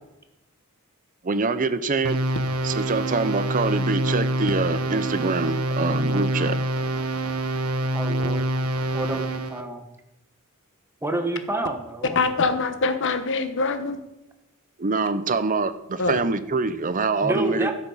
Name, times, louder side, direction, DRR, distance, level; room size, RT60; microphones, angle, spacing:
voice 1, 1.2-2.2 2.6-6.6 14.8-17.7, right 3 dB, 40° right, 13 dB, 0.7 m, -25 dB
sound 1, 2.0-9.6, right 1 dB, 85° right, 1.0 m, -26 dB
voice 2, 7.9-8.4 8.9-9.8 11.0-12.2 17.2-17.7, right 2 dB, 10° right, 5 dB, 1.2 m, -28 dB
voice 3, 12.1-14.0 16.0-16.2, left 4 dB, 60° left, 9 dB, 1.1 m, -24 dB
13.0 x 6.7 x 5.6 m, 0.91 s
head